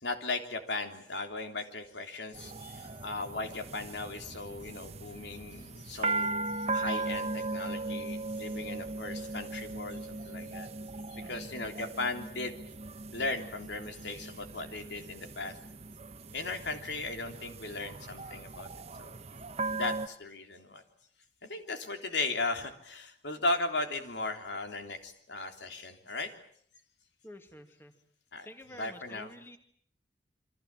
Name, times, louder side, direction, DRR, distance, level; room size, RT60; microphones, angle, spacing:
voice 1, 0.0-10.7 11.1-12.6 13.1-15.6 16.3-18.7 19.0-19.2 19.7-20.8 21.4-26.3 28.3-28.5 28.7-29.3, left 3 dB, 80° left, 5 dB, 3.4 m, -37 dB
sound 1, 2.3-20.1, right 3 dB, 35° right, 1.1 m, -38 dB
voice 2, 27.2-28.0 28.4-29.6, left 1 dB, 15° left, 6 dB, 2.3 m, -50 dB
28.0 x 24.5 x 7.6 m, 0.63 s
head